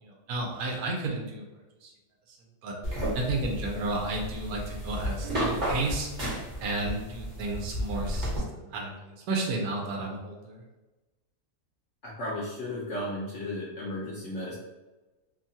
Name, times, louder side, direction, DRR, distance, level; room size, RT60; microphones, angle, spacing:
voice 1, 0.0-1.4 1.8-1.9 2.6-2.7 3.1-6.3 6.6-10.6, right 2 dB, 75° right, 0 dB, 1.1 m, -32 dB
sound 1, 2.8-8.4, equal, 35° right, 0.8 m, -33 dB
voice 2, 12.0-14.5, left 1 dB, 60° left, -6 dB, 0.8 m, -34 dB
2.9 x 2.2 x 2.6 m, 1.1 s
omnidirectional pair, 1.7 m